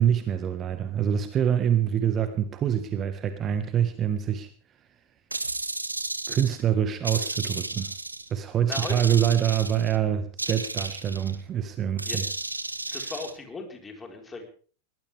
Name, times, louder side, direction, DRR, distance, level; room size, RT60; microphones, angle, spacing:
voice 1, 0.0-4.5 6.3-7.9 8.3-12.2 12.9-13.1, right 9 dB, 30° right, 9 dB, 1.5 m, -25 dB
sound 1, 5.3-6.6 7.0-8.3 8.7-10.0 10.4-11.4 12.0-13.3, right 2 dB, 85° right, 1.3 m, -33 dB
voice 2, 8.7-9.1 12.0-12.2 12.9-14.4, left 3 dB, 15° left, 3 dB, 4.5 m, -37 dB
21.5 x 19.0 x 3.5 m, 0.42 s
figure-of-eight pair, 90°, 0 cm